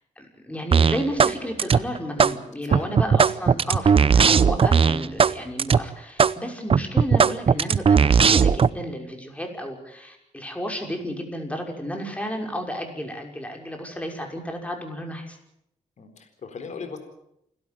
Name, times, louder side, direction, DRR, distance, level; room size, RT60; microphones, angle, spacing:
voice 1, 0.2-15.4, equal, 10° left, 3 dB, 5.9 m, -32 dB
sound 1, 0.7-1.3 1.6-2.3 2.7-5.3 5.6-5.8 6.2-6.3 6.7-8.7, right 6 dB, 45° right, 0.7 m, -17 dB
voice 2, 2.7-3.2 16.0-17.0, left 5 dB, 60° left, 6 dB, 4.1 m, -38 dB
28.5 x 13.0 x 9.2 m, 0.78 s
cardioid pair, 95°, 13 cm